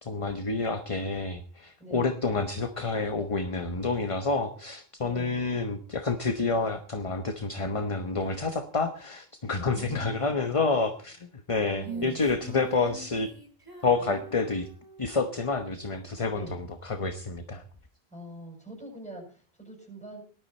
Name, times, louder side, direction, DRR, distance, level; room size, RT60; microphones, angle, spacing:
voice 1, 0.0-13.3 13.8-14.7 15.0-17.6, left 4 dB, 35° left, 8 dB, 1.0 m, -29 dB
voice 2, 1.8-2.1 5.0-5.4 9.6-10.4 10.7-10.8 11.7-12.3 14.0-14.6 16.3-16.6 18.1-20.2, right 1 dB, 5° left, 1 dB, 7.3 m, -44 dB
Female singing, 11.8-15.3, right 3 dB, 20° right, 3.6 m, -43 dB
18.5 x 12.5 x 4.3 m, 0.40 s
omnidirectional pair, 1.1 m